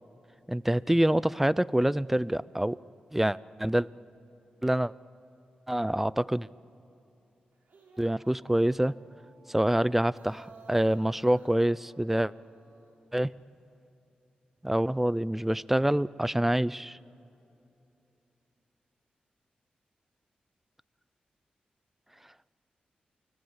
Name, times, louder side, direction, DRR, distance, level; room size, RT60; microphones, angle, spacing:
voice 1, 0.5-2.8 3.1-3.9 4.6-4.9 5.7-6.5 8.0-9.0 9.5-12.3 13.1-13.3 14.6-17.0, right 1 dB, 10° right, 20 dB, 0.5 m, -26 dB
sound 1, 7.5-13.0, right 3 dB, 70° right, 7.0 m, -56 dB
29.5 x 19.5 x 8.2 m, 2.8 s
cardioid pair, 55°, 3 cm